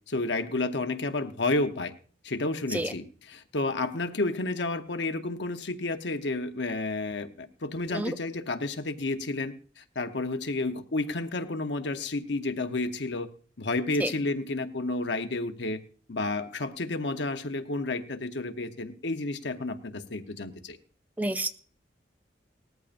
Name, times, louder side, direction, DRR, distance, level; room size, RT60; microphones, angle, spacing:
voice 1, 0.1-1.9 2.2-13.3 13.6-15.8 16.1-20.8, left 2 dB, 65° left, 7 dB, 0.9 m, -31 dB
voice 2, 21.2-21.5, right 1 dB, 10° right, 10 dB, 0.5 m, -29 dB
19.0 x 14.0 x 2.6 m, 0.43 s
head